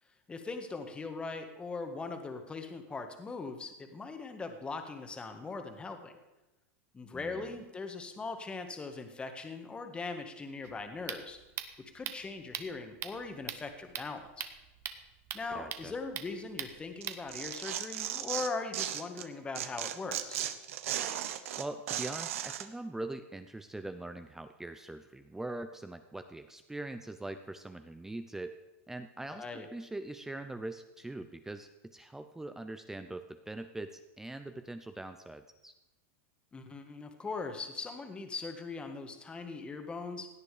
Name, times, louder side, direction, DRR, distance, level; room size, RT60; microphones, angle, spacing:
voice 1, 0.3-6.1 6.9-11.4 11.9-14.5 15.3-20.5 29.4-29.7 36.5-40.3, left 3 dB, 15° left, 6 dB, 1.6 m, -40 dB
voice 2, 7.1-7.5 15.5-15.9 21.6-28.6 28.9-35.7, right 2 dB, 5° right, 9 dB, 0.6 m, -42 dB
sound 1, 10.6-17.6, right 10 dB, 35° right, 1.1 m, -43 dB
Tearing, 17.0-19.3 19.6-22.7, right 11 dB, 75° right, 1.1 m, -36 dB
17.0 x 9.6 x 4.9 m, 1.0 s
supercardioid pair, 135°, 7 cm